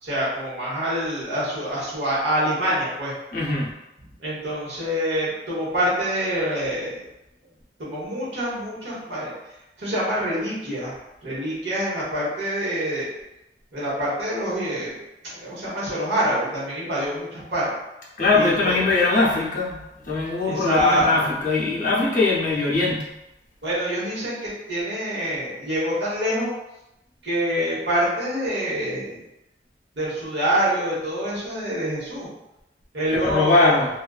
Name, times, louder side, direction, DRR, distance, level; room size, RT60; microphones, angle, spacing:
voice 1, 0.0-3.1 4.2-7.0 7.8-9.3 9.8-13.1 13.7-15.0 15.2-17.7 18.3-18.7 20.4-21.4 23.6-26.5 27.2-29.2 29.9-32.3 32.9-33.8, equal, 75° right, -7 dB, 1.1 m, -26 dB
voice 2, 3.3-3.7 18.2-23.1 33.2-33.9, left 3 dB, 45° left, -4 dB, 0.6 m, -21 dB
2.5 x 2.3 x 2.3 m, 0.91 s
head